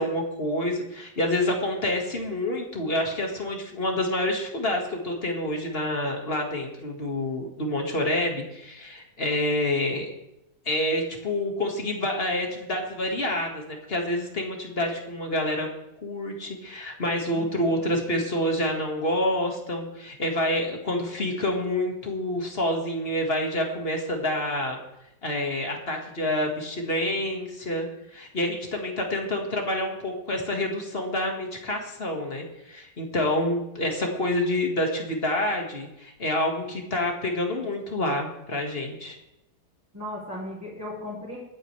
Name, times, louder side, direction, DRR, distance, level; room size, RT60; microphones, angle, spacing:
voice 1, 0.0-10.1 10.7-15.7 16.0-24.8 25.2-27.9 28.1-39.2, left 1 dB, 35° left, 2 dB, 2.0 m, -28 dB
voice 2, 17.3-17.9 39.9-41.4, left 1 dB, 10° right, -8 dB, 3.2 m, -37 dB
24.0 x 8.8 x 3.4 m, 0.87 s
omnidirectional pair, 1.9 m